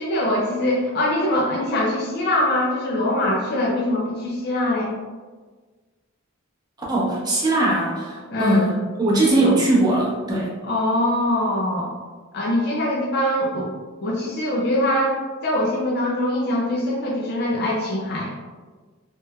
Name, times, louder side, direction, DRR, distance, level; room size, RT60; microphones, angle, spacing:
voice 1, 0.0-4.9 8.3-8.6 10.6-11.9 12.3-13.7 14.0-15.2 15.4-18.4, left 1 dB, 50° left, -3 dB, 0.4 m, -23 dB
voice 2, 6.9-10.5, right 1 dB, 20° right, -5 dB, 0.7 m, -20 dB
3.2 x 2.9 x 2.3 m, 1.4 s
head